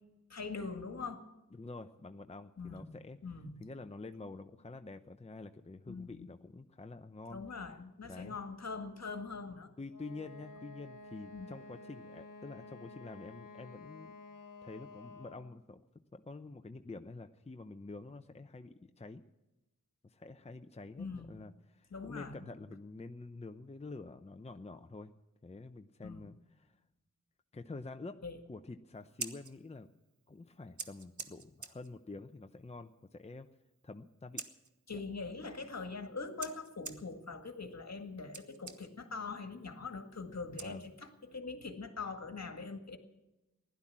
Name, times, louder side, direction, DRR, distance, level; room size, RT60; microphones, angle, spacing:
voice 1, 0.3-1.2 2.6-2.9 3.2-3.6 5.9-6.3 7.3-9.7 11.3-11.5 21.0-21.4 21.9-22.4 26.0-26.3 28.2-28.4 34.9-43.0, left 4 dB, 55° left, 6 dB, 2.0 m, -42 dB
voice 2, 1.5-3.2 3.6-7.4 8.1-8.4 9.8-14.2 14.6-15.8 16.1-19.2 20.0-25.1 25.4-26.8 27.5-28.2 28.5-29.9 30.3-33.5 33.8-34.4 40.6-40.9, left 3 dB, 20° left, 7 dB, 0.7 m, -48 dB
Wind instrument woodwind instrument, 9.9-15.6, left 3 dB, 80° left, 1.1 m, -52 dB
Scissors, 28.9-41.3, right 5 dB, 65° right, 1.2 m, -51 dB
16.0 x 11.5 x 7.4 m, 0.99 s
wide cardioid pair, 60°, 31 cm